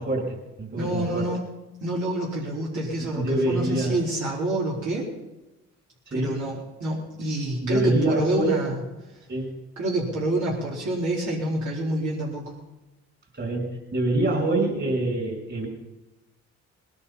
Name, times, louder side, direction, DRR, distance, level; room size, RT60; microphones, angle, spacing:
voice 1, 0.0-1.3 3.0-4.0 6.1-6.4 7.6-8.6 9.3-9.5 13.3-15.7, right 1 dB, 40° right, 1 dB, 6.1 m, -25 dB
voice 2, 0.8-1.4 1.8-5.1 6.1-8.7 9.8-12.4, right 1 dB, 75° right, -5 dB, 4.5 m, -27 dB
20.0 x 11.0 x 5.7 m, 1.0 s
cardioid pair, 90°, 30 cm